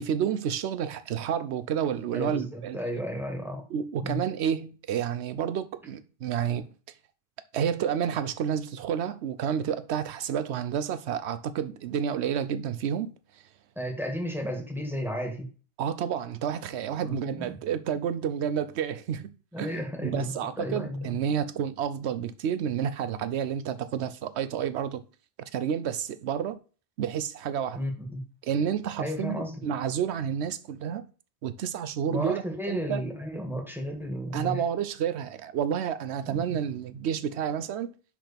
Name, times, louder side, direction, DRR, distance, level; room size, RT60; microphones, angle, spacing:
voice 1, 0.0-2.8 3.7-6.7 7.5-13.1 15.8-19.3 19.6-19.7 20.0-25.0 25.5-26.6 27.0-27.8 28.4-31.0 31.4-33.0 34.3-37.9, right 8 dB, 70° right, 0.9 m, -30 dB
voice 2, 2.1-3.6 4.0-4.2 13.7-15.5 17.0-17.5 19.5-21.1 27.7-28.2 29.0-29.6 32.1-34.6 36.3-36.4, equal, ahead, 1.7 m, -33 dB
5.9 x 4.9 x 5.1 m
omnidirectional pair, 1.2 m